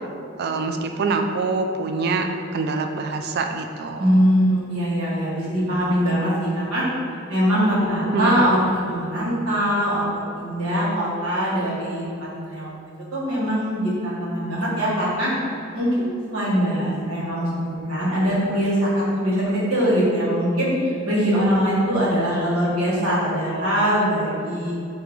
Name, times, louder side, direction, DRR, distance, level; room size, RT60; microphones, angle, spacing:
voice 1, 0.4-2.3 2.5-4.0 8.1-8.5, right 3 dB, 50° right, 5 dB, 0.3 m, -24 dB
voice 2, 4.0-6.8 7.3-10.0 10.3-12.7 13.1-15.3 15.7-24.7, equal, 85° right, -7 dB, 1.4 m, -22 dB
3.8 x 2.8 x 4.5 m, 2.6 s
head